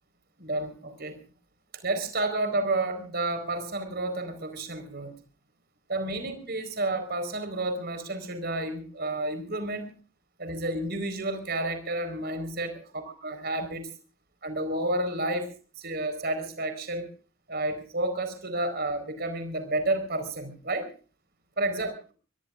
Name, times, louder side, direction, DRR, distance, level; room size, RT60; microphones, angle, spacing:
voice 1, 0.4-1.1 1.8-5.1 5.9-9.9 10.4-12.8 13.2-13.9 14.4-15.5 15.8-17.1 17.5-20.9 21.6-22.1, right 2 dB, 50° right, 8 dB, 4.4 m, -30 dB
24.5 x 22.5 x 2.5 m, 0.38 s
head